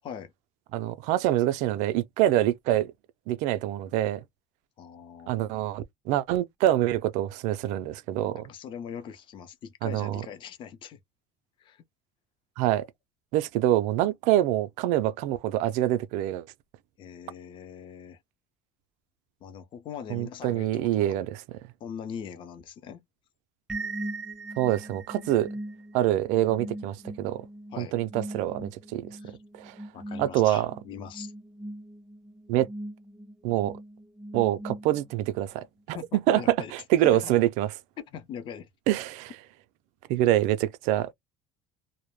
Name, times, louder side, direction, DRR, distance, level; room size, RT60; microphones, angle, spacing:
voice 1, 0.7-2.9 3.3-4.2 5.3-8.5 9.8-10.2 12.6-12.9 13.3-16.5 20.1-21.3 24.6-25.5 25.9-27.4 27.8-29.1 29.5-29.7 30.2-30.7 32.5-32.7 33.4-33.7 34.3-37.7 38.9-39.3 40.1-41.1, right 13 dB, 70° right, 0.4 m, -25 dB
voice 2, 4.8-5.6 8.3-11.0 11.6-11.8 17.0-18.2 19.4-21.2 21.8-23.0 27.7-27.9 29.2-29.4 29.9-31.3 35.9-36.7 37.1-37.3 38.0-38.7, left 8 dB, 40° left, 0.6 m, -41 dB
sound 1, 23.7-35.3, right 2 dB, 5° right, 0.6 m, -40 dB
2.2 x 2.0 x 3.0 m
cardioid pair, 140°, 13 cm